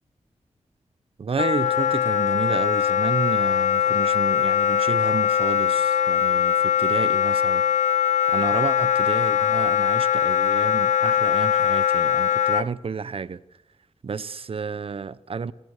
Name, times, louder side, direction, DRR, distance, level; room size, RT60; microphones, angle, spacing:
voice 1, 1.2-7.6 8.3-13.4 14.0-15.5, right 5 dB, 50° right, 0.9 m, -30 dB
Wind instrument woodwind instrument, 1.4-12.6, left 9 dB, 90° left, 0.8 m, -21 dB
27.5 x 20.0 x 6.6 m
wide cardioid pair, 135°, 12 cm